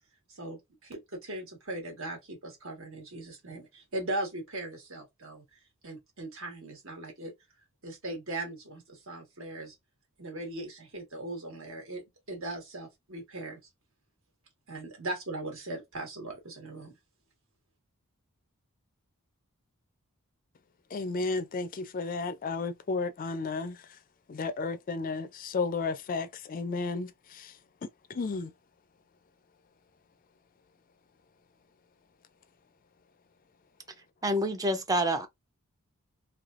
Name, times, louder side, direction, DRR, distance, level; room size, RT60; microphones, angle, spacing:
voice 1, 0.3-5.4 5.8-7.3 7.8-9.7 10.2-13.6 14.7-17.0, right 2 dB, 65° right, 1.5 m, -39 dB
voice 2, 20.9-23.8 24.3-27.5 28.1-28.5, left 4 dB, 40° left, 0.4 m, -33 dB
voice 3, 34.2-35.3, equal, 15° right, 0.5 m, -27 dB
3.2 x 2.6 x 2.4 m
head